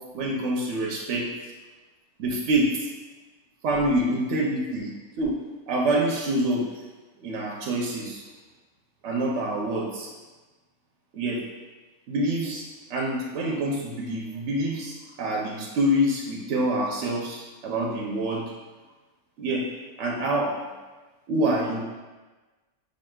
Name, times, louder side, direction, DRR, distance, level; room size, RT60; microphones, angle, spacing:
voice 1, 0.1-1.3 2.2-2.9 3.6-4.9 5.2-5.3 5.7-6.6 7.2-8.2 9.0-10.1 11.1-11.4 12.1-12.7 12.9-18.5 19.4-19.7 20.0-20.6 21.3-21.8, right 1 dB, 65° right, -2 dB, 0.8 m, -26 dB
5.9 x 2.6 x 2.2 m, 1.2 s
omnidirectional pair, 1.4 m